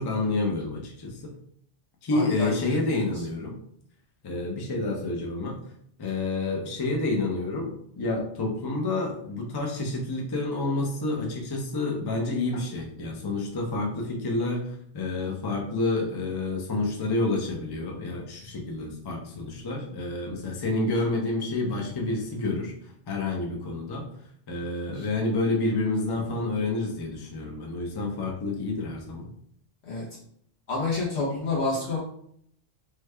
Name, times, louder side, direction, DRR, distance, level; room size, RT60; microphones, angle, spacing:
voice 1, 0.0-1.3 2.0-3.6 4.2-5.6 6.0-7.7 8.0-22.7 23.1-24.1 24.5-29.3, left 2 dB, 30° left, 0 dB, 0.4 m, -29 dB
voice 2, 2.1-3.0 24.9-25.0 29.9-30.1 30.7-32.0, left 3 dB, 65° left, -6 dB, 1.1 m, -29 dB
3.2 x 2.2 x 3.2 m, 0.67 s
omnidirectional pair, 1.2 m